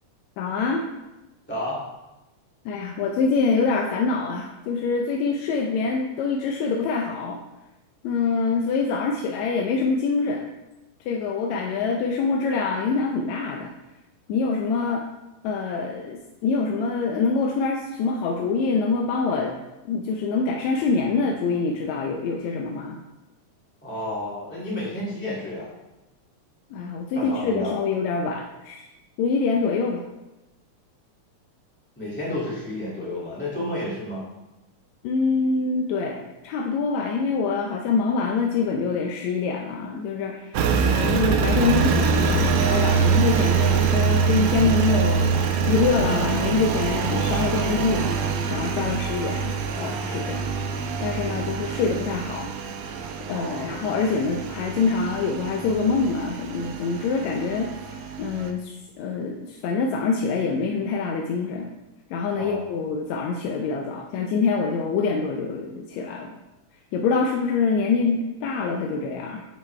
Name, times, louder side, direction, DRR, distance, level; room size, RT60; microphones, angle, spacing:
voice 1, 0.4-0.9 2.7-7.4 8.0-10.4 11.1-13.7 14.3-15.0 15.4-19.5 19.9-23.0 26.7-28.8 29.2-30.0 35.0-45.3 45.7-48.1 48.5-49.5 49.8-50.5 51.0-52.5 53.3-61.7 62.1-66.3 66.9-69.4, left 4 dB, 75° left, 1 dB, 1.9 m, -25 dB
voice 2, 23.8-25.7 27.1-27.8 32.0-34.3 49.7-50.2 53.3-53.7 62.4-62.6, left 1 dB, 5° left, -8 dB, 1.5 m, -31 dB
Engine, 40.5-58.5, right 5 dB, 80° right, 1.3 m, -24 dB
9.2 x 6.2 x 3.2 m, 1.0 s
omnidirectional pair, 3.5 m